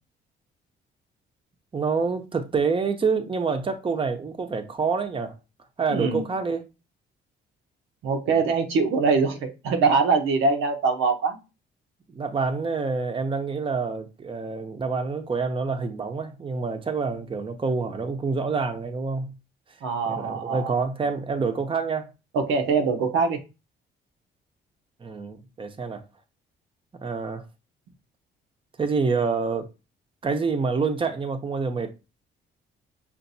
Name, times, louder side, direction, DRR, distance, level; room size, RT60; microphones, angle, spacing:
voice 1, 1.7-5.3 5.8-6.6 8.3-8.4 12.1-19.3 20.1-22.1 25.0-26.0 27.0-27.4 28.8-29.7 30.2-31.9, right 4 dB, 25° right, 0.7 m, -27 dB
voice 2, 5.9-6.3 8.0-11.4 19.8-20.7 22.3-23.4, right 4 dB, 90° right, 0.9 m, -23 dB
5.6 x 2.6 x 2.7 m
cardioid pair, 90°, 20 cm